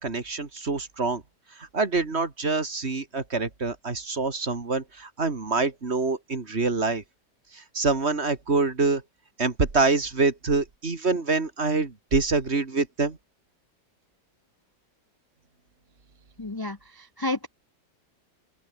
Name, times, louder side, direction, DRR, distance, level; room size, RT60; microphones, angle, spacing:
voice 1, 0.0-1.2 1.6-7.0 7.5-9.0 9.4-13.2, right 3 dB, 35° right, 2.4 m, -26 dB
voice 2, 16.4-17.5, left 2 dB, 25° left, 0.5 m, -31 dB
open air
omnidirectional pair, 2.0 m